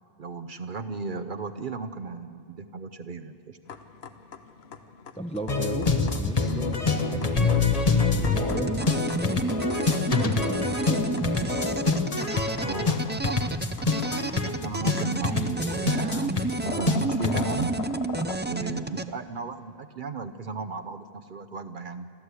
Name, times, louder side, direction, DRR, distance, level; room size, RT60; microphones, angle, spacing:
voice 1, 0.2-3.6 12.6-13.7 14.4-17.7 18.4-22.1, right 4 dB, 55° right, 7 dB, 0.8 m, -35 dB
sound 1, 3.7-18.4, left 6 dB, 75° left, 1.2 m, -42 dB
voice 2, 5.2-7.7 8.1-9.8 10.1-11.2, right 1 dB, 5° left, 4 dB, 0.8 m, -36 dB
sound 2, 5.5-17.6, left 4 dB, 35° left, 1.2 m, -25 dB
sound 3, 8.5-19.1, right 2 dB, 15° right, 0.4 m, -31 dB
28.5 x 13.5 x 8.2 m, 2.4 s
omnidirectional pair, 1.1 m